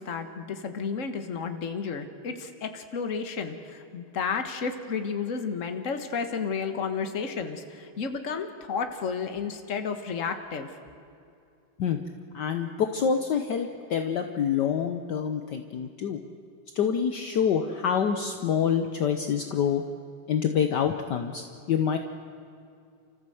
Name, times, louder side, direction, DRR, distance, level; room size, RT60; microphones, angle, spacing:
voice 1, 0.0-10.8, left 5 dB, 40° left, 7 dB, 1.6 m, -32 dB
voice 2, 12.3-16.2 16.7-19.8 20.3-22.0, left 7 dB, 60° left, 6 dB, 1.5 m, -26 dB
30.0 x 14.5 x 7.9 m, 2.5 s
omnidirectional pair, 2.3 m